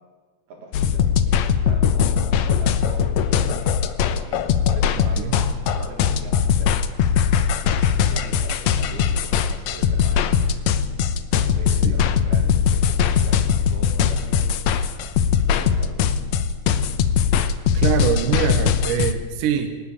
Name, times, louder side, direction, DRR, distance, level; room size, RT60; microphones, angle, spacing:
voice 1, 0.5-3.5 4.2-5.5 5.7-6.8 7.1-10.4 11.1-13.4 13.7-14.5 15.5-16.1, right 3 dB, 85° right, 1 dB, 5.9 m, -41 dB
sound 1, 0.7-19.1, left 7 dB, 70° left, 1.7 m, -20 dB
voice 2, 17.7-19.7, right 9 dB, 65° right, 7 dB, 2.6 m, -23 dB
27.0 x 11.0 x 8.9 m, 1.4 s
omnidirectional pair, 4.3 m